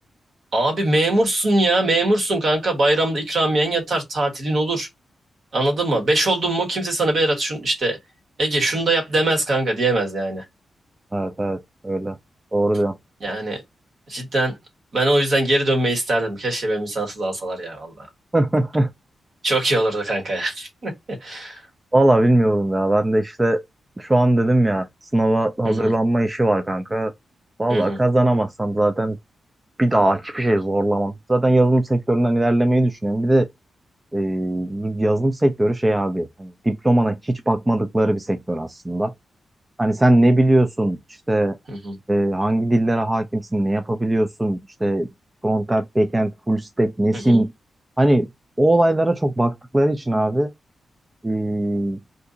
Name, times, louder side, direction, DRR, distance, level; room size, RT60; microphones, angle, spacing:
voice 1, 0.5-4.9 5.5-8.0 8.4-10.4 13.2-13.6 14.1-14.5 14.9-18.1 19.4-21.6 25.6-25.9 27.7-28.0 41.7-41.9 47.1-47.4, right 2 dB, 55° right, 1.3 m, -22 dB
voice 2, 11.1-12.2 12.5-12.9 18.3-18.9 21.9-23.6 24.0-24.9 25.1-27.1 27.6-29.2 29.8-33.5 34.1-39.1 39.8-41.0 41.3-41.5 42.1-45.1 45.4-47.5 48.0-48.3 48.6-50.5 51.2-52.0, right 1 dB, 15° right, 0.3 m, -20 dB
2.7 x 2.5 x 3.7 m
wide cardioid pair, 115°, 0 cm